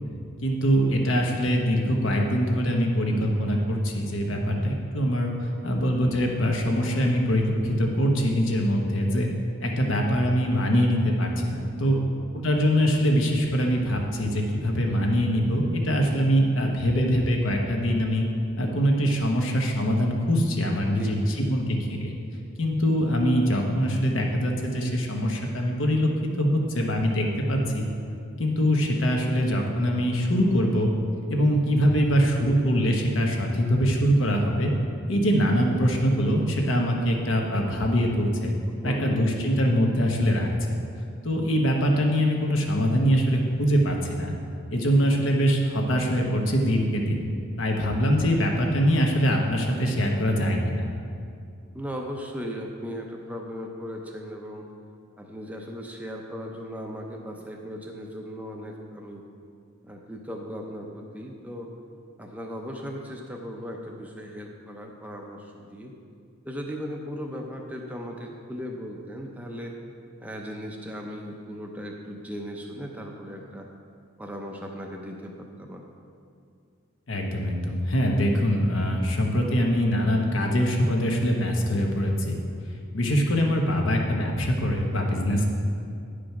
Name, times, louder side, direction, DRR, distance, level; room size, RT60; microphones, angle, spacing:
voice 1, 0.4-9.3 9.6-12.0 12.3-18.3 18.6-22.1 22.6-26.1 26.4-26.5 26.7-27.9 28.4-30.9 31.3-34.7 35.1-38.5 38.8-40.8 41.2-44.3 44.7-47.2 47.6-50.9 77.1-82.3 82.9-85.4, equal, 70° left, 1 dB, 1.1 m, -23 dB
voice 2, 11.9-12.3 20.9-21.5 38.7-39.3 51.7-54.7 55.2-59.2 59.8-61.7 62.2-65.9 66.4-69.7 70.2-73.7 74.2-75.9, equal, 5° right, 1 dB, 0.5 m, -37 dB
9.3 x 5.0 x 5.8 m, 2.4 s
head